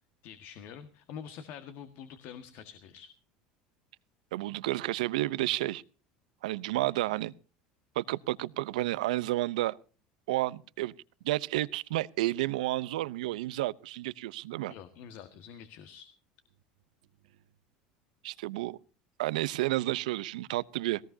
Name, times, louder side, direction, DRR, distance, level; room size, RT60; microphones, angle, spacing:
voice 1, 0.2-3.1 14.7-16.1, left 8 dB, 65° left, 1.7 m, -46 dB
voice 2, 4.3-5.8 6.4-7.3 8.0-9.8 10.3-10.9 11.2-14.7 18.2-18.8 19.2-21.0, right 17 dB, 80° right, 0.7 m, -31 dB
19.0 x 18.5 x 2.8 m
hypercardioid pair, 90°, 4 cm